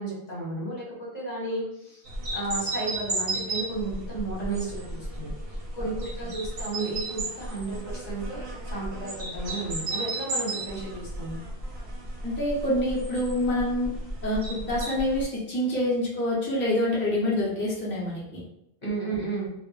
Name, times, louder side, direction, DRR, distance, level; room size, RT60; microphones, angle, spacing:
voice 1, 0.0-2.0 2.3-8.4 8.6-11.4 18.8-19.5, right 2 dB, 45° left, -4 dB, 0.9 m, -33 dB
sound 1, 2.1-15.2, right 2 dB, 65° right, 1.0 m, -34 dB
voice 2, 12.2-13.9 14.2-18.4, left 1 dB, 15° left, -6 dB, 0.4 m, -26 dB
2.2 x 2.1 x 3.1 m, 0.81 s
omnidirectional pair, 1.1 m